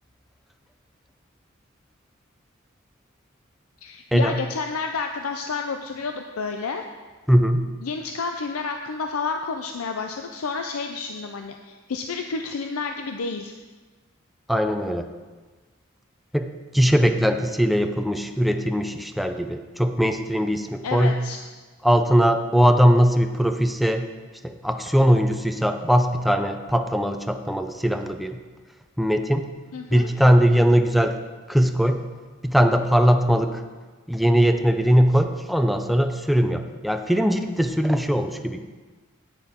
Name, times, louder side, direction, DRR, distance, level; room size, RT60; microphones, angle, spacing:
voice 1, 3.8-6.8 7.8-13.5 20.8-21.4 29.7-30.1, left 4 dB, 85° left, 5 dB, 0.5 m, -30 dB
voice 2, 7.3-7.7 14.5-15.1 16.3-21.2 21.8-24.1 24.4-28.4 29.0-29.5 29.9-31.2 31.5-32.0 32.4-33.6 34.1-38.6, equal, ahead, 6 dB, 0.5 m, -20 dB
9.8 x 9.1 x 3.6 m, 1.3 s
head